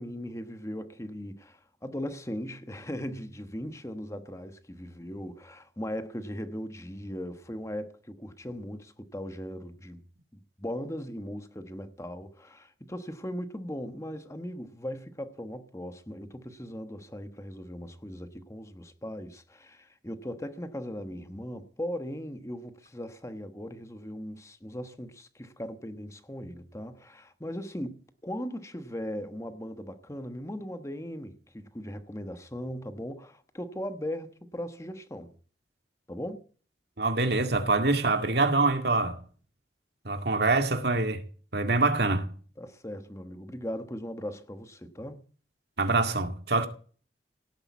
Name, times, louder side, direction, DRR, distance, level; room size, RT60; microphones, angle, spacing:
voice 1, 0.0-10.0 10.3-35.3 36.1-36.4 42.6-45.3, equal, 15° left, 1.2 m, -38 dB
voice 2, 37.0-39.2 40.0-41.2 41.5-42.3 45.8-46.7, right 3 dB, 65° right, 2.1 m, -25 dB
17.5 x 8.6 x 8.4 m
head